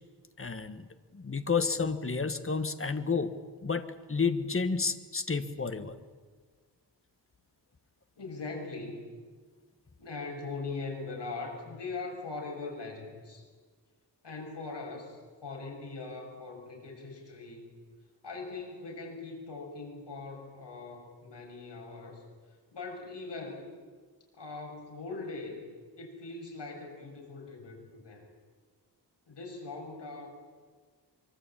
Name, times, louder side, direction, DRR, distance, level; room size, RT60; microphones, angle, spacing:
voice 1, 0.4-0.9 1.1-6.0, left 5 dB, 30° left, 10 dB, 1.6 m, -31 dB
voice 2, 8.2-9.1 10.0-13.5 14.2-17.7 18.2-22.2 22.7-23.7 24.3-25.7 26.0-28.3 29.3-30.5, left 3 dB, 85° left, 1 dB, 6.8 m, -41 dB
24.5 x 24.0 x 8.7 m, 1.5 s
wide cardioid pair, 120°, 41 cm